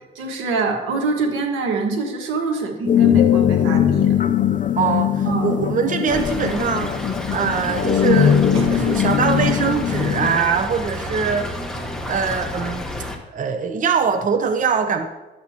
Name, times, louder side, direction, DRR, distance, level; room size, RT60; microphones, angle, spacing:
voice 1, 0.1-4.1 5.2-5.6 8.5-8.9, right 4 dB, 90° right, 2 dB, 1.6 m, -25 dB
sound 1, 2.9-10.4, left 9 dB, 40° left, 0.5 m, -19 dB
voice 2, 4.8-6.9 7.3-11.5 12.0-12.8 13.3-15.1, right 6 dB, 40° right, 7 dB, 0.7 m, -22 dB
Stream / Trickle dribble, 6.1-13.2, left 1 dB, 5° left, 1.2 m, -30 dB
12.0 x 7.8 x 2.9 m, 1.1 s
cardioid pair, 90°, 20 cm